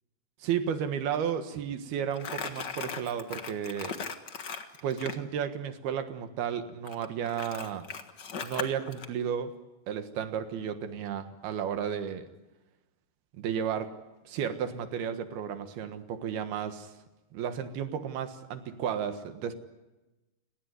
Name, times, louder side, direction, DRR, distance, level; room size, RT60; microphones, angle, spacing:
voice 1, 0.4-4.0 4.8-7.9 8.4-9.5 9.9-12.3 13.4-13.9 14.2-16.9 17.3-19.5, right 8 dB, 75° right, 9 dB, 3.4 m, -33 dB
Crumpling crinkling, 2.1-5.2 6.9-9.1, left 6 dB, 75° left, 0.9 m, -38 dB
29.5 x 18.5 x 9.7 m, 1.1 s
omnidirectional pair, 4.6 m